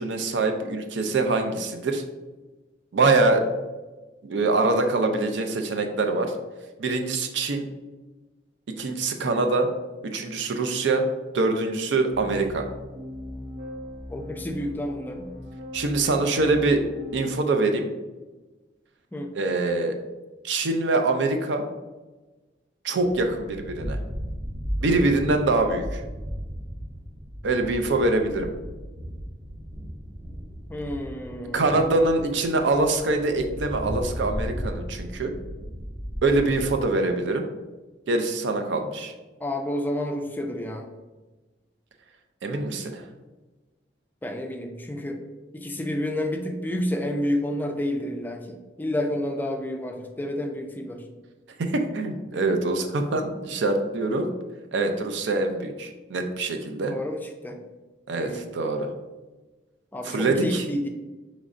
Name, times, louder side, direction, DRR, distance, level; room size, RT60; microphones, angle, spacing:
voice 1, 0.0-2.0 2.9-3.4 4.2-6.3 6.8-7.7 8.7-9.7 10.0-11.0 11.3-12.7 15.7-16.8 17.1-17.9 19.3-20.0 20.4-21.6 22.8-24.0 24.8-26.0 27.4-28.5 31.5-35.3 36.2-37.5 38.1-39.1 42.4-43.0 51.6-54.3 54.7-57.0 58.1-58.9 60.0-60.6, right 2 dB, 90° right, 5 dB, 0.5 m, -24 dB
sound 1, 12.1-17.2, left 1 dB, 75° right, 1.0 m, -40 dB
voice 2, 14.1-15.3 19.1-19.3 30.7-31.8 39.4-40.9 44.2-45.2 45.5-51.0 56.9-57.6 58.2-58.5 59.9-60.9, left 1 dB, 10° left, 3 dB, 0.3 m, -30 dB
sound 2, 23.0-36.8, equal, 25° right, 0.7 m, -35 dB
4.9 x 3.1 x 2.5 m, 1.2 s
head